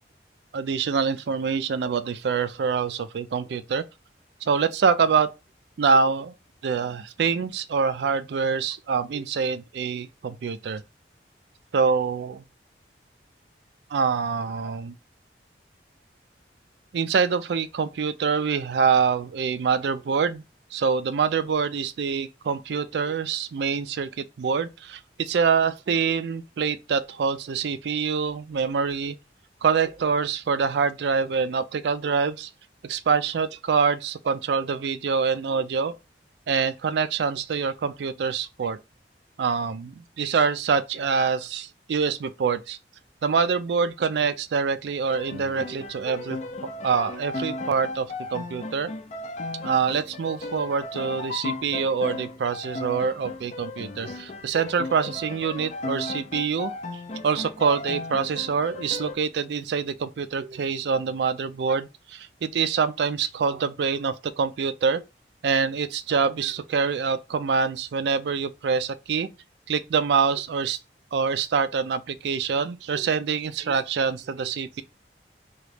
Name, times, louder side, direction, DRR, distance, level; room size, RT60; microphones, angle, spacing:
voice 1, 0.5-3.8 4.4-5.3 5.8-6.3 6.6-10.8 11.7-12.4 13.9-14.9 16.9-20.4 20.7-29.1 29.6-32.5 32.8-35.9 36.5-38.8 39.4-42.8 43.2-46.4 46.8-48.9 49.5-56.7 57.2-65.0 65.4-69.3 69.7-70.8 71.1-74.8, right 5 dB, 70° right, 0.4 m, -25 dB
sound 1, 45.1-59.2, left 2 dB, 40° left, 0.4 m, -36 dB
3.0 x 2.4 x 3.3 m
head